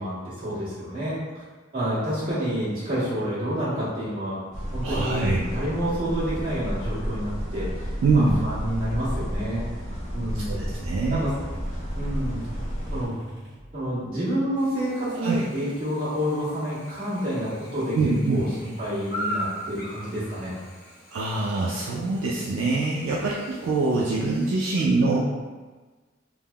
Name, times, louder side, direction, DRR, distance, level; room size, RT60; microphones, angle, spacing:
voice 1, 0.0-1.4 1.7-4.4 4.7-9.7 10.1-10.7 11.1-11.3 12.0-12.4 12.9-13.2 13.7-18.0 18.3-20.5, equal, 45° right, -12 dB, 1.4 m, -29 dB
sound 1, 4.5-13.0, equal, 35° left, 0.6 m, -32 dB
voice 2, 4.8-5.5 8.0-8.4 10.3-11.2 15.2-15.4 17.9-18.4 21.1-25.3, right 3 dB, 70° right, -4 dB, 0.3 m, -24 dB
sound 2, 7.6-13.9, equal, 20° right, 1.2 m, -40 dB
Chirp tweet / Buzz, 14.5-24.7, equal, 60° left, 1.0 m, -40 dB
3.4 x 2.0 x 2.2 m, 1.3 s
head